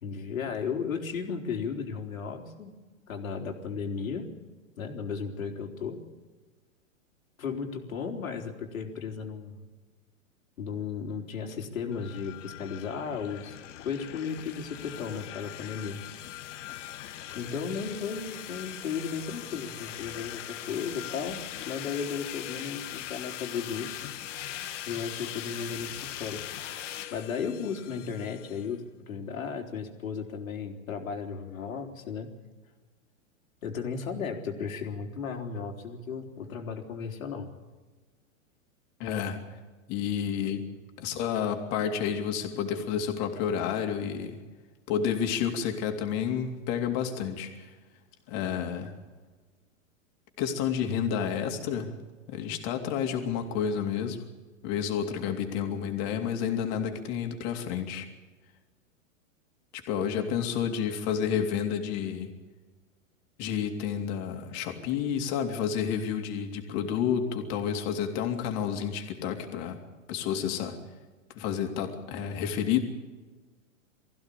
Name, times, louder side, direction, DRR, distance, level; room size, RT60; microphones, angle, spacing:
voice 1, 0.0-2.7 3.1-4.3 4.8-6.0 7.4-9.6 10.6-13.6 13.8-16.0 17.3-24.0 24.9-26.5 27.1-32.3 33.6-37.5, left 6 dB, 75° left, 4 dB, 3.8 m, -35 dB
sound 1, 11.9-28.7, left 12 dB, 60° left, 1.9 m, -41 dB
voice 2, 39.0-39.4 39.9-40.6 41.0-44.4 44.9-47.7 48.3-48.9 50.4-51.9 52.3-54.2 54.6-58.1 59.7-62.3 63.4-69.8 70.1-70.8 71.3-72.8, left 8 dB, 40° left, 4 dB, 3.4 m, -30 dB
21.0 x 15.5 x 8.6 m, 1.3 s
hypercardioid pair, 130°, 40 cm